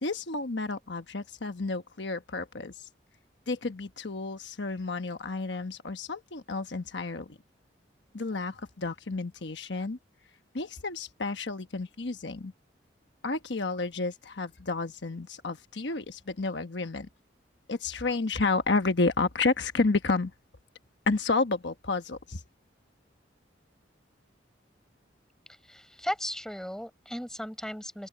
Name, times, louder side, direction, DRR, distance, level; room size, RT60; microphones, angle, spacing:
voice 1, 0.0-2.7 3.5-7.4 8.1-10.0 10.5-12.5 13.2-17.1 17.7-20.3 21.1-22.4, left 3 dB, 70° left, 1.1 m, -30 dB
voice 2, 25.6-28.1, equal, 5° left, 6.1 m, -36 dB
open air
head